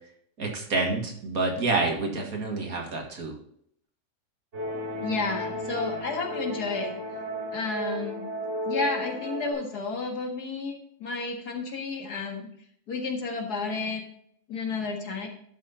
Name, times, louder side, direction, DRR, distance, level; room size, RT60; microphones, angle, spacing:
voice 1, 0.4-3.3, right 3 dB, 65° right, 1 dB, 2.3 m, -28 dB
sound 1, 4.5-9.5, equal, 45° right, 3.9 m, -33 dB
voice 2, 5.0-7.0 7.5-8.2 8.7-12.5 12.9-14.0 14.5-15.3, left 4 dB, 85° left, 2 dB, 2.2 m, -31 dB
11.5 x 5.8 x 4.2 m, 0.67 s
omnidirectional pair, 1.6 m